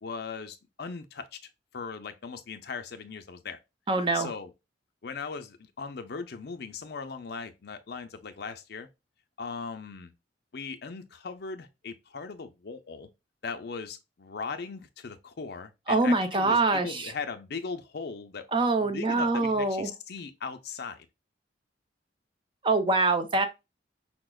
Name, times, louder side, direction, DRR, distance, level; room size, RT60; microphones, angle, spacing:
voice 1, 0.0-3.6 4.1-4.5 5.0-8.9 9.4-10.1 10.5-13.1 13.4-18.5 18.8-21.1, left 5 dB, 60° left, 0.5 m, -39 dB
voice 2, 3.9-4.3 15.9-17.1 18.5-19.9 22.6-23.5, right 3 dB, 25° right, 0.5 m, -24 dB
5.8 x 2.1 x 2.2 m
head